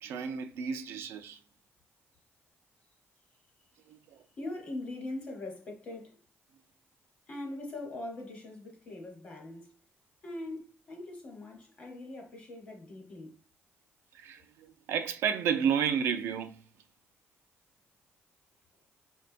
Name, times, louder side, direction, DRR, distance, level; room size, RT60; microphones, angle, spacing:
voice 1, 0.0-1.4 14.1-14.4 14.9-16.6, right 7 dB, 80° right, 0.4 m, -31 dB
voice 2, 4.4-6.1 7.3-9.7 10.2-13.3, left 2 dB, 35° left, 0.9 m, -41 dB
5.0 x 2.2 x 2.5 m
cardioid pair, 165°, 4 cm